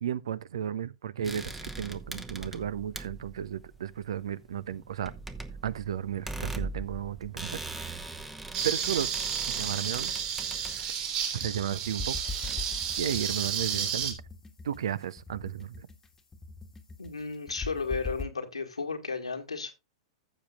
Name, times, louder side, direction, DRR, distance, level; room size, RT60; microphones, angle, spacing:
voice 1, 0.0-5.1 5.6-8.1 8.6-9.1 9.5-10.1 11.3-12.1 13.0-14.2 14.6-15.9, right 9 dB, 60° right, 0.6 m, -34 dB
sound 1, 1.2-13.9, right 2 dB, 5° right, 0.9 m, -41 dB
sound 2, 8.5-14.1, right 8 dB, 35° right, 2.8 m, -32 dB
sound 3, 11.4-18.2, left 3 dB, 10° left, 1.4 m, -41 dB
voice 2, 17.0-19.7, left 4 dB, 80° left, 1.7 m, -34 dB
15.0 x 7.3 x 2.3 m
figure-of-eight pair, 100°, 3 cm